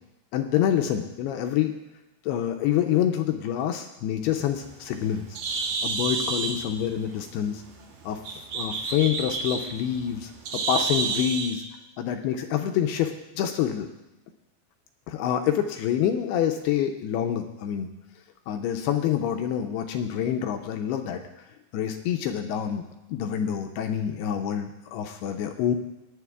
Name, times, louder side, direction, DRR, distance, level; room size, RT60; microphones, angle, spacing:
voice 1, 0.3-1.7 2.3-5.3 5.8-7.6 8.1-8.2 8.5-11.6 12.0-13.9 15.1-17.9 18.5-21.2 21.7-22.8 23.1-25.7, left 10 dB, 85° left, 5 dB, 2.4 m, -27 dB
Bird, 4.3-11.6, right 4 dB, 70° right, 2.3 m, -31 dB
19.0 x 10.0 x 2.4 m, 0.97 s
omnidirectional pair, 5.0 m